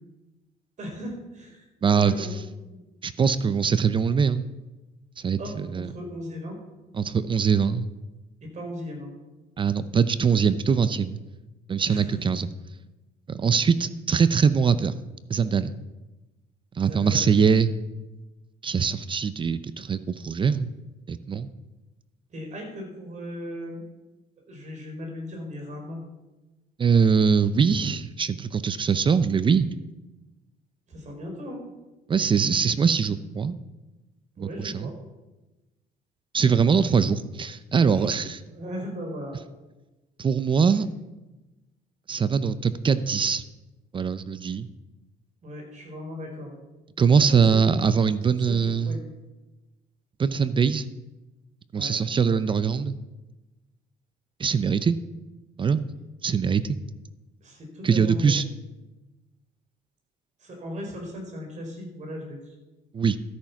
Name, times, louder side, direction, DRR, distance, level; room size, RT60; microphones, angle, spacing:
voice 1, 0.8-1.7 2.0-2.4 2.7-2.8 5.4-6.6 8.4-9.1 11.9-12.1 16.9-17.4 22.3-23.8 24.5-26.0 30.9-31.6 34.4-34.9 36.7-36.9 37.9-38.2 38.5-39.3 45.4-46.6 47.3-47.6 48.3-49.1 51.7-52.0 57.4-58.4 60.4-62.5, equal, 45° right, 2 dB, 4.5 m, -37 dB
voice 2, 1.8-2.3 3.0-4.5 5.2-5.9 6.9-7.9 9.6-11.2 11.7-12.5 13.3-14.9 15.3-15.7 16.8-17.7 18.6-20.7 21.1-21.5 26.8-29.7 32.1-33.6 34.4-34.9 36.3-38.4 40.2-40.9 42.1-43.4 43.9-44.7 47.0-49.0 50.2-50.9 51.7-52.9 54.4-55.0 55.6-55.8 56.2-56.8 57.8-58.4 62.9-63.2, right 6 dB, 30° right, 14 dB, 0.6 m, -22 dB
13.0 x 8.8 x 5.9 m, 1.1 s
cardioid pair, 110°, 17 cm